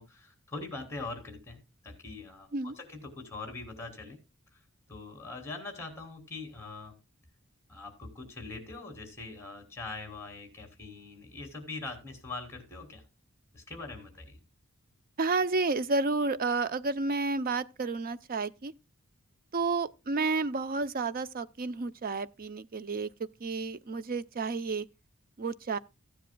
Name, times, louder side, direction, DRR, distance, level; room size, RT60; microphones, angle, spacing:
voice 1, 0.0-4.2 4.5-4.6 4.9-6.9 7.7-13.0 13.5-14.4, left 3 dB, 10° left, 3.2 m, -42 dB
voice 2, 15.2-18.7 19.5-24.9 25.4-25.8, right 3 dB, 45° right, 0.6 m, -31 dB
15.5 x 10.0 x 2.3 m
head